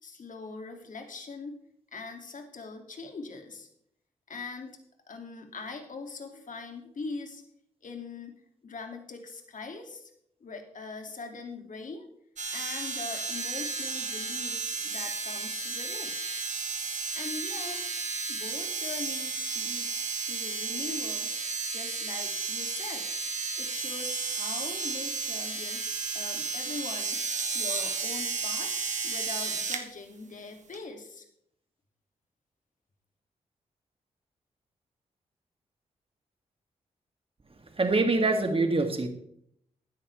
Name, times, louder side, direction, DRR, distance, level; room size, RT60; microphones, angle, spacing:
voice 1, 0.0-1.6 1.9-3.7 4.3-4.8 5.1-7.4 7.8-10.1 10.4-12.1 12.5-16.1 17.1-17.8 18.3-21.3 21.7-23.1 23.5-27.3 27.5-28.7 29.0-31.3, left 3 dB, 60° left, 4 dB, 2.5 m, -42 dB
sound 1, 12.4-29.8 30.7-30.8, right 4 dB, 55° right, 1.9 m, -33 dB
voice 2, 37.7-39.1, right 3 dB, 40° right, 6 dB, 2.3 m, -24 dB
15.0 x 10.5 x 3.4 m, 0.72 s
supercardioid pair, 40°, 15 cm